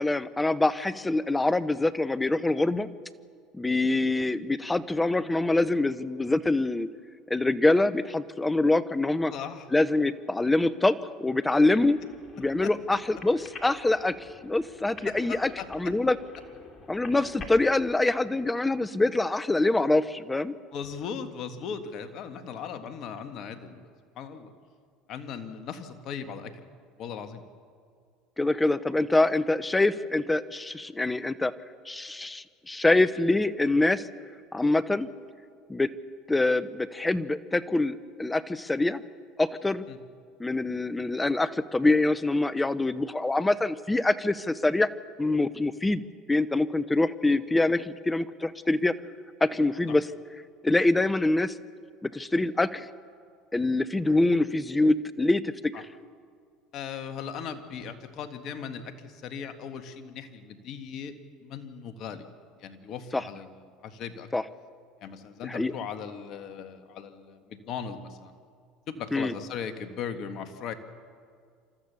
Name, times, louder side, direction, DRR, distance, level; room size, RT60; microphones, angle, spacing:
voice 1, 0.0-2.9 3.5-6.9 7.3-9.3 9.7-12.0 12.4-16.2 16.9-20.5 28.4-31.5 31.9-34.0 34.5-35.1 35.7-35.9 36.3-39.0 39.4-39.8 40.4-44.9 45.2-46.0 46.3-48.9 49.4-50.1 50.6-51.6 52.0-52.9 53.5-55.9 63.1-63.2 64.3-64.4 65.4-65.7 69.1-69.3, left 2 dB, 15° left, 16 dB, 0.8 m, -25 dB
voice 2, 9.3-9.7 12.6-12.7 15.0-15.9 20.7-24.5 25.1-26.6 27.0-27.4 39.9-40.0 55.7-55.8 56.7-61.1 61.4-62.3 62.6-63.5 63.8-64.3 65.0-68.3 68.9-70.7, left 7 dB, 55° left, 8 dB, 1.7 m, -38 dB
sound 1, 11.7-17.6, left 4 dB, 35° left, 2.9 m, -47 dB
28.0 x 13.5 x 7.0 m, 2.1 s
hypercardioid pair, 85°, 0 cm